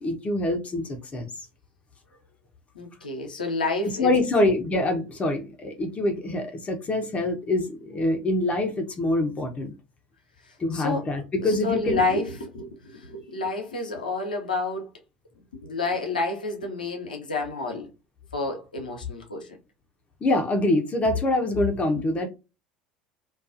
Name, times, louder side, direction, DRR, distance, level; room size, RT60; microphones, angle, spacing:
voice 1, 0.0-1.5 3.8-9.7 10.6-12.0 20.2-22.3, left 2 dB, 30° left, 0.6 m, -25 dB
voice 2, 2.7-4.2 10.5-11.0 11.4-14.9 15.6-17.9 18.3-19.5 21.9-22.0, left 3 dB, 85° left, 0.6 m, -29 dB
2.4 x 2.3 x 2.4 m
figure-of-eight pair, 65°, 4 cm